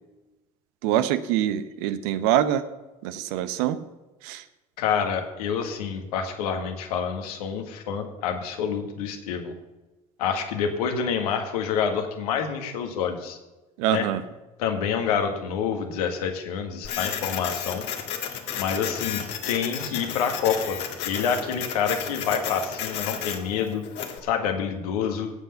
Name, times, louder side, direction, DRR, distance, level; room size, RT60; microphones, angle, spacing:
voice 1, 0.8-2.6 3.0-3.8 4.2-4.4 13.8-14.2, right 11 dB, 75° right, 12 dB, 0.9 m, -24 dB
voice 2, 4.8-9.5 10.2-13.4 13.9-14.0 14.6-17.9 18.6-20.8 21.0-23.8 24.2-25.3, left 7 dB, 80° left, 4 dB, 1.8 m, -27 dB
Printer, 16.8-24.2, left 8 dB, 65° left, 1.8 m, -33 dB
17.0 x 5.7 x 6.9 m, 1.1 s
hypercardioid pair, 65°, 19 cm